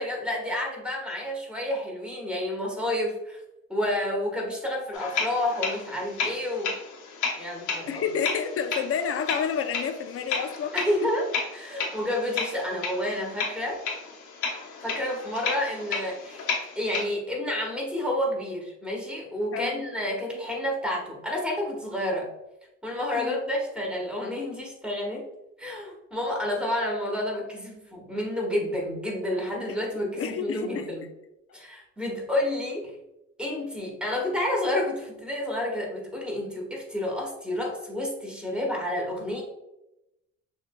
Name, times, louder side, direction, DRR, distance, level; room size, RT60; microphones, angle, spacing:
voice 1, 0.0-3.4 3.7-6.7 7.4-8.0 10.7-11.2 11.5-13.8 14.8-16.5 16.7-22.3 22.8-25.3 25.6-31.0 31.5-32.9 33.4-39.4, left 1 dB, 5° right, -1 dB, 1.4 m, -30 dB
sound 1, 4.9-17.0, left 4 dB, 75° left, 1.1 m, -33 dB
voice 2, 7.9-10.8 19.5-19.8 23.1-23.4 30.2-30.9, left 7 dB, 50° left, 8 dB, 0.6 m, -29 dB
6.7 x 2.7 x 2.3 m, 0.90 s
cardioid pair, 90°, 30 cm